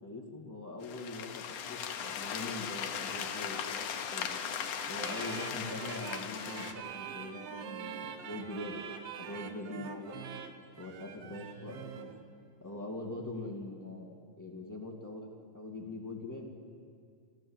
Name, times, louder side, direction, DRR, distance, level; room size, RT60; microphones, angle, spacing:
voice 1, 0.0-3.8 4.1-4.3 4.9-10.2 10.8-12.1 12.6-16.5, left 2 dB, 5° left, -2 dB, 1.6 m, -43 dB
sound 1, 0.8-6.7, left 8 dB, 70° left, 2.5 m, -38 dB
sound 2, 4.2-6.1 6.7-9.7 10.0-10.1 11.2-13.3, right 2 dB, 45° right, 3.6 m, -58 dB
sound 3, 5.0-12.2, right 8 dB, 65° right, 1.7 m, -44 dB
28.0 x 14.5 x 7.3 m, 2.2 s
omnidirectional pair, 3.9 m